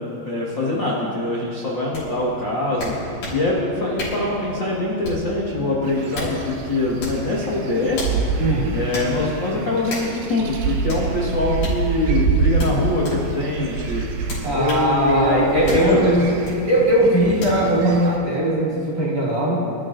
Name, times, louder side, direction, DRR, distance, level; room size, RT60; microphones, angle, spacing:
voice 1, 0.2-8.4 8.7-14.1 14.5-16.1, left 2 dB, 75° left, -6 dB, 1.0 m, -23 dB
sound 1, 1.9-2.1 2.8-3.4 4.0-4.2 5.0-5.3 5.9-6.4 7.0-7.2 7.9-8.2 8.9-9.1 9.9-10.1 10.9-11.1 11.6-11.8 12.6-13.2 14.3-14.9 15.7-15.9 16.4-16.6 17.4-17.6, left 1 dB, 60° left, 5.9 m, -30 dB
sound 2, 5.8-18.2, right 5 dB, 70° right, 2.8 m, -27 dB
voice 2, 8.4-8.8 14.4-16.3 16.7-19.6, right 1 dB, 40° right, -6 dB, 3.2 m, -19 dB
25.5 x 13.0 x 2.6 m, 2.5 s
omnidirectional pair, 5.0 m